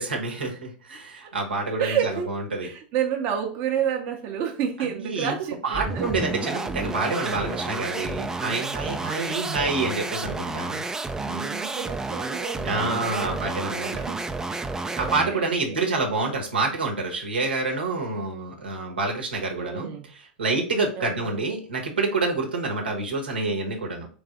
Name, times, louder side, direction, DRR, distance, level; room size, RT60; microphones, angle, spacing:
voice 1, 0.0-2.7 4.8-5.3 5.6-10.8 12.6-13.9 15.0-24.1, right 3 dB, 85° right, 1 dB, 1.1 m, -27 dB
voice 2, 1.8-2.3 2.6-6.0 7.1-7.5 11.2-14.2 14.5-15.9 19.6-20.1 21.0-21.4, right 9 dB, 45° right, 2 dB, 0.8 m, -30 dB
sound 1, 5.7-15.4, right 3 dB, 10° right, 0.3 m, -31 dB
3.4 x 3.3 x 3.6 m, 0.41 s
hypercardioid pair, 95°, 5 cm